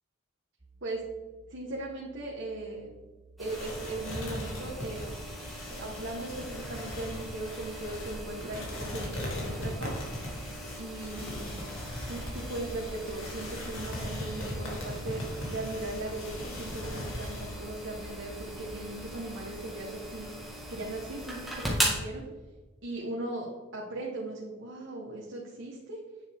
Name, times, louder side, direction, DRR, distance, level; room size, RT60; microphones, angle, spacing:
sound 1, 0.6-19.0, right 1 dB, 30° right, 0.7 m, -53 dB
voice 1, 1.5-2.9 3.4-5.2 5.7-9.9 10.8-11.6 12.1-20.3 20.7-22.2 22.8-26.0, right 2 dB, 70° right, -3 dB, 1.3 m, -38 dB
sound 2, 3.4-22.0, right 1 dB, ahead, 1.6 m, -40 dB
sound 3, 3.5-17.6, left 1 dB, 80° left, 2.4 m, -39 dB
8.9 x 6.8 x 3.5 m, 1.4 s
head